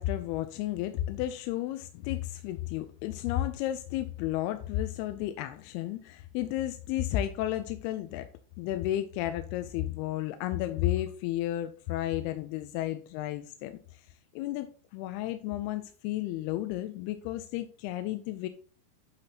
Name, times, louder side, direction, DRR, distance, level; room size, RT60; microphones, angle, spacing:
voice 1, 0.0-8.3 8.6-14.0 14.4-14.7 14.9-18.5, left 13 dB, 85° left, 2.4 m, -32 dB
10.5 x 6.0 x 2.8 m
omnidirectional pair, 4.8 m